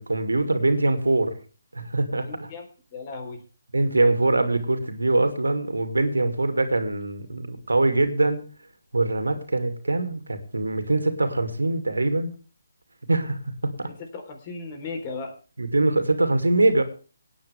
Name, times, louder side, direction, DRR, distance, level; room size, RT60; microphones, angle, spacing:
voice 1, 0.0-1.3 1.7-2.5 3.7-8.4 8.9-12.3 13.1-13.4 13.8-13.9 15.6-16.8, right 2 dB, 90° right, 8 dB, 2.5 m, -23 dB
voice 2, 2.2-3.4 13.8-15.4, left 3 dB, 35° left, 5 dB, 4.0 m, -36 dB
19.0 x 9.5 x 3.5 m, 0.36 s
figure-of-eight pair, 150°, 0 cm